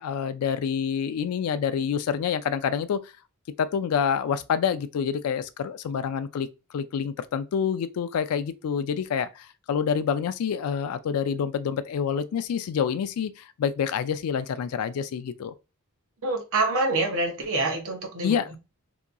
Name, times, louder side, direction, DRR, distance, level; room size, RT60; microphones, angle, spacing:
voice 1, 0.0-3.0 3.6-6.5 6.7-9.3 9.7-13.3 13.6-15.5 18.2-18.6, left 7 dB, 75° left, 0.3 m, -27 dB
voice 2, 16.2-18.3, right 2 dB, 65° right, 0.8 m, -26 dB
2.8 x 2.3 x 2.4 m
head